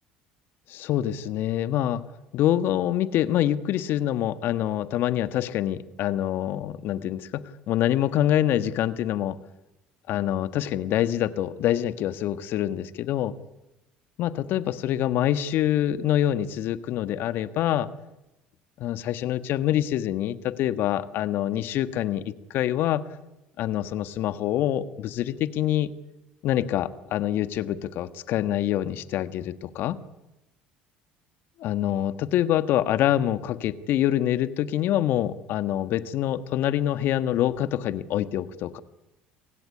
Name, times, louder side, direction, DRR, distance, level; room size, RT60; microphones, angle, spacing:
voice 1, 0.7-2.0 2.3-9.4 10.1-13.3 14.2-17.9 18.8-23.0 23.6-25.9 26.4-30.0 31.6-38.8, left 12 dB, 65° left, 12 dB, 1.5 m, -25 dB
28.5 x 17.0 x 9.9 m, 0.98 s
hypercardioid pair, 70°, 4 cm